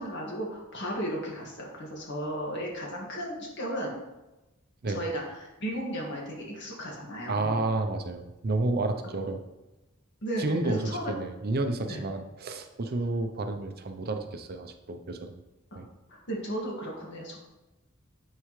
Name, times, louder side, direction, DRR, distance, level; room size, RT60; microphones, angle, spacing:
voice 1, 0.0-3.9 4.9-7.6 10.2-11.0 11.9-12.0 16.1-17.4, equal, 60° left, -2 dB, 1.9 m, -35 dB
voice 2, 7.3-9.4 10.4-15.3 15.8-15.9, right 2 dB, 50° right, 7 dB, 0.6 m, -30 dB
9.8 x 4.6 x 3.2 m, 1.0 s
head